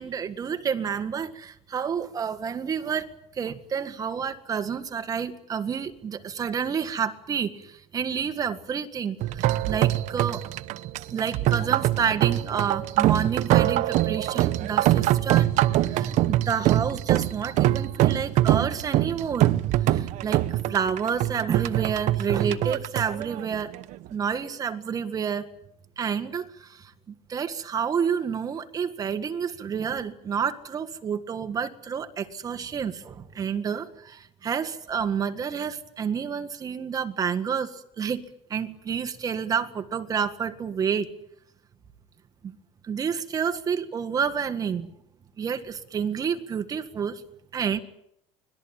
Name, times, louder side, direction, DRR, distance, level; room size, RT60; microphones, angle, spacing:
voice 1, 0.0-10.4 11.1-15.5 15.8-19.5 19.8-23.7 24.1-25.5 26.0-41.1 42.4-42.5 42.8-44.9 45.4-47.2 47.5-47.8, right 7 dB, 25° right, 10 dB, 1.9 m, -29 dB
sound 1, 9.2-24.1, right 14 dB, 60° right, 1.0 m, -24 dB
25.5 x 20.0 x 9.1 m, 0.77 s
cardioid pair, 165°, 14 cm